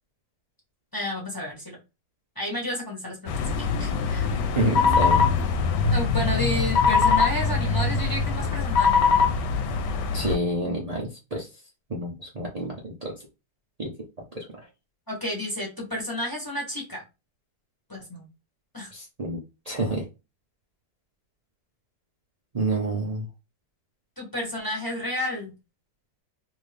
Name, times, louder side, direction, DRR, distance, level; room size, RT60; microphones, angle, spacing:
voice 1, 0.9-1.8 2.4-3.4 3.7-4.3 5.9-9.3 15.1-17.0 17.9-18.3 18.7-18.9 24.2-25.5, left 1 dB, 15° left, -2 dB, 0.7 m, -31 dB
sound 1, 3.3-10.3, left 5 dB, 75° left, 1.1 m, -22 dB
voice 2, 4.5-5.2 10.1-11.5 11.9-13.1 13.8-13.9 14.3-14.4 18.9-19.4 19.7-20.0 22.5-23.3, right 1 dB, 85° right, -3 dB, 0.3 m, -28 dB
2.9 x 2.7 x 3.3 m, 0.26 s
omnidirectional pair, 2.0 m